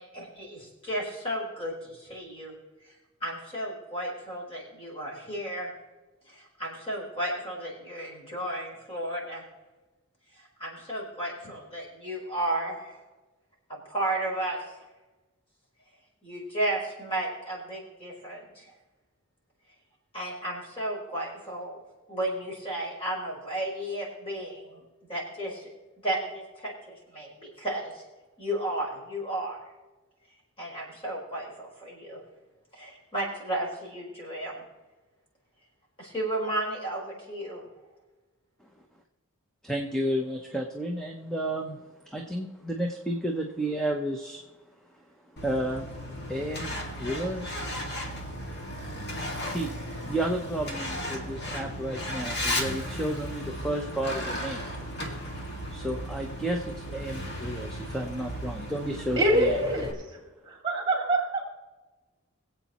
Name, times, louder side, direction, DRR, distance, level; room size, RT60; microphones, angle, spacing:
voice 1, 0.0-2.5 3.2-5.7 6.3-9.4 10.6-13.0 13.7-14.6 16.2-18.7 20.1-21.8 22.1-24.8 25.1-25.7 26.0-28.0 28.4-29.6 30.6-32.2 32.7-34.6 36.0-37.6, right 1 dB, 25° left, -4 dB, 4.2 m, -33 dB
voice 2, 39.6-41.8 42.1-44.4 45.4-45.9 46.3-47.6 49.4-49.7 50.0-54.7 55.7-59.6, right 1 dB, 5° left, 2 dB, 0.8 m, -32 dB
Truck, 45.4-59.9, equal, 50° left, 1.9 m, -35 dB
voice 3, 59.2-60.2 60.4-61.4, right 1 dB, 20° right, 0 dB, 2.5 m, -25 dB
22.5 x 8.1 x 3.0 m, 1.2 s
head